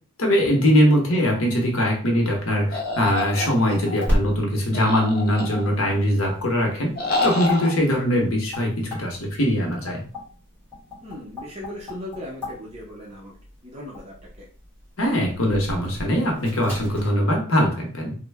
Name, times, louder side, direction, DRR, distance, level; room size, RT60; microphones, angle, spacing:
voice 1, 0.2-6.9 7.2-10.0 15.0-18.2, equal, 70° left, 1 dB, 0.9 m, -21 dB
sound 1, 2.2-17.1, left 1 dB, 10° left, 1.4 m, -35 dB
sound 2, 2.7-4.0 4.7-5.9 6.9-7.7, left 2 dB, 45° left, 0.6 m, -28 dB
voice 2, 11.0-13.4 13.6-14.5, left 1 dB, 25° right, -3 dB, 0.6 m, -38 dB
3.1 x 2.1 x 3.4 m, 0.42 s
head